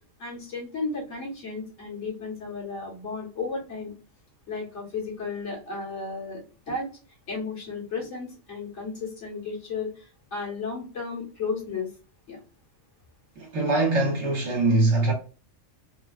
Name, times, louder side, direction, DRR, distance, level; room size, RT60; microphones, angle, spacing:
voice 1, 0.2-3.9 4.5-6.4 6.7-6.9 7.3-10.0 10.3-11.9 12.3-12.4, left 4 dB, 60° left, 1.7 m, -33 dB
voice 2, 13.4-15.1, right 2 dB, 60° right, 1.4 m, -22 dB
3.4 x 2.3 x 2.3 m
omnidirectional pair, 1.4 m